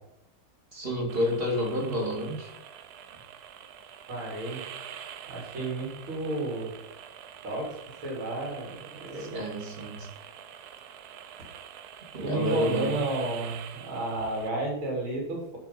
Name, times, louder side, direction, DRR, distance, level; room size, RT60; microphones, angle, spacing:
voice 1, 0.7-2.5 9.2-10.1 12.1-13.0, left 1 dB, 25° right, -1 dB, 2.7 m, -29 dB
sound 1, 1.1-14.5, right 9 dB, 65° right, 1.0 m, -45 dB
voice 2, 4.1-4.7 5.3-6.7 7.4-7.7 8.0-9.4 12.2-15.6, right 2 dB, 85° right, -2 dB, 4.1 m, -32 dB
11.5 x 4.7 x 5.7 m, 0.89 s
omnidirectional pair, 2.2 m